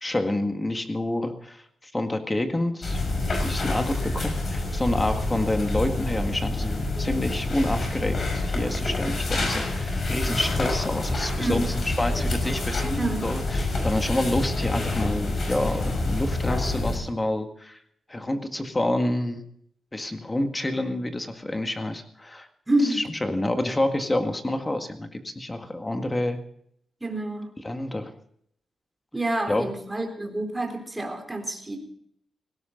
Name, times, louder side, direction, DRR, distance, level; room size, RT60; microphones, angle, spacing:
voice 1, 0.0-17.8 18.1-19.5 19.9-22.5 22.9-26.4 27.6-28.1 29.5-29.7, left 1 dB, 20° left, 6 dB, 1.8 m, -28 dB
sound 1, 2.8-17.0, left 2 dB, 55° left, 5.9 m, -27 dB
voice 2, 11.4-11.7 13.0-13.4 22.7-23.0 27.0-27.5 29.1-31.8, right 2 dB, 15° right, 4 dB, 3.8 m, -28 dB
19.0 x 17.0 x 3.9 m, 0.67 s
cardioid pair, 100°, 0 cm